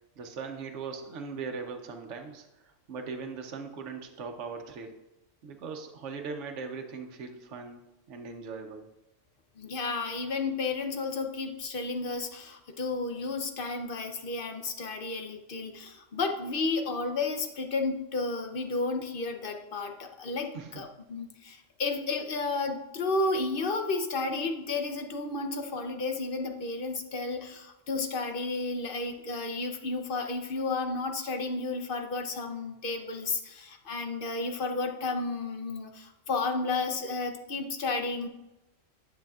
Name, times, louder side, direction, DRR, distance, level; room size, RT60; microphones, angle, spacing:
voice 1, 0.2-5.0 5.4-7.8 8.1-8.9 20.5-20.9, right 5 dB, 70° right, 4 dB, 1.1 m, -40 dB
voice 2, 9.6-38.3, left 3 dB, 50° left, 5 dB, 0.8 m, -32 dB
10.0 x 7.2 x 2.4 m, 0.95 s
omnidirectional pair, 1.3 m